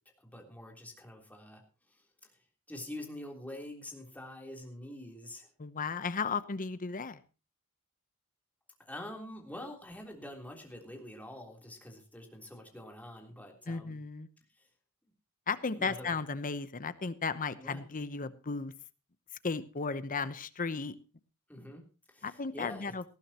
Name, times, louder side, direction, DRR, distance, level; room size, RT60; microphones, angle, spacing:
voice 1, 0.2-1.6 1.9-2.3 2.7-5.5 8.8-14.0 14.5-14.7 15.7-16.1 17.5-17.8 21.5-21.8 22.1-22.9, left 1 dB, 5° left, 1 dB, 3.5 m, -46 dB
voice 2, 5.6-7.2 13.7-14.3 15.5-18.7 19.4-21.0 22.2-23.0, left 4 dB, 40° left, 13 dB, 0.9 m, -35 dB
19.0 x 15.0 x 2.9 m, 0.32 s
head